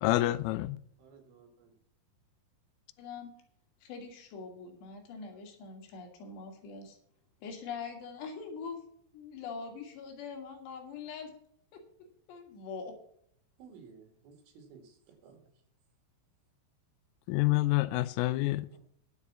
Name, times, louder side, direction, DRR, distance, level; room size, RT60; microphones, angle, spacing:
voice 1, 0.0-0.8 17.3-18.7, left 18 dB, 85° left, 3.1 m, -27 dB
voice 2, 1.0-1.7 13.6-15.0 15.2-15.4 18.7-18.8, right 5 dB, 75° right, 4.7 m, -55 dB
voice 3, 3.0-3.4 3.8-7.0 7.4-8.8 9.1-11.3 11.7-13.0, left 5 dB, 65° left, 3.5 m, -43 dB
10.5 x 7.1 x 7.0 m
omnidirectional pair, 5.9 m